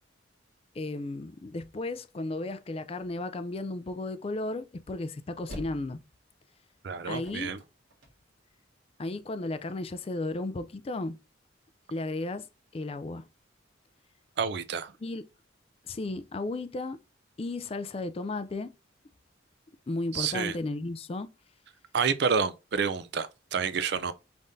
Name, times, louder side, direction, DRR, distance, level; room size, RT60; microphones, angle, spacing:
voice 1, 0.8-6.0 7.1-7.5 9.0-11.2 11.9-12.5 12.7-13.3 15.0-15.2 15.9-17.0 17.4-18.7 19.9-21.3, left 2 dB, 30° left, 0.4 m, -34 dB
sound 1, 5.2-8.9, equal, 75° right, 1.8 m, -46 dB
voice 2, 6.8-7.6 14.4-14.9 20.1-20.5 21.9-24.1, right 6 dB, 60° right, 0.4 m, -29 dB
5.5 x 3.5 x 2.6 m
head